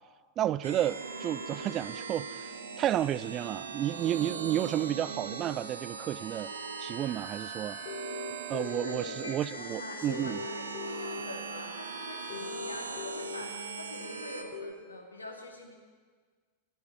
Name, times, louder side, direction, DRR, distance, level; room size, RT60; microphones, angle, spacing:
voice 1, 0.4-2.5 2.8-6.5 6.8-7.8 8.5-10.4, right 11 dB, 30° right, 0.4 m, -31 dB
sound 1, 0.6-14.4, right 4 dB, 70° right, 1.4 m, -40 dB
sound 2, 7.8-9.0 10.1-11.2 12.3-13.4 14.5-14.7, left 4 dB, 50° left, 1.9 m, -40 dB
voice 2, 8.5-15.7, left 2 dB, 80° left, 2.5 m, -44 dB
13.0 x 11.5 x 8.9 m
figure-of-eight pair, 90°, 0 cm